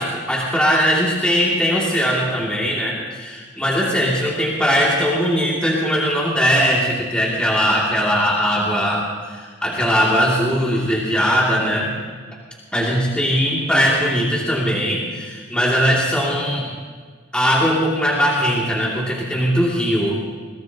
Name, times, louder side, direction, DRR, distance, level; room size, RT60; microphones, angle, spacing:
voice 1, 0.0-11.9 12.7-16.7 17.3-20.2, equal, 5° left, -6 dB, 2.9 m, -20 dB
22.0 x 17.5 x 3.0 m, 1.5 s
head